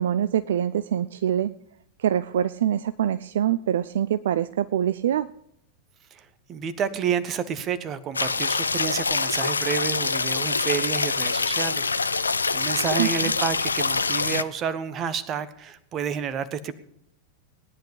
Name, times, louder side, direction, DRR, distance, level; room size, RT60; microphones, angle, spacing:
voice 1, 0.0-1.5 2.0-5.3 13.0-13.3, right 10 dB, 60° right, 14 dB, 0.5 m, -24 dB
voice 2, 6.1-12.3 12.5-16.7, right 7 dB, 30° right, 14 dB, 1.3 m, -30 dB
sound 1, 8.1-14.4, left 4 dB, 75° left, 0.6 m, -25 dB
18.0 x 10.5 x 5.4 m, 0.72 s
figure-of-eight pair, 90°, 0 cm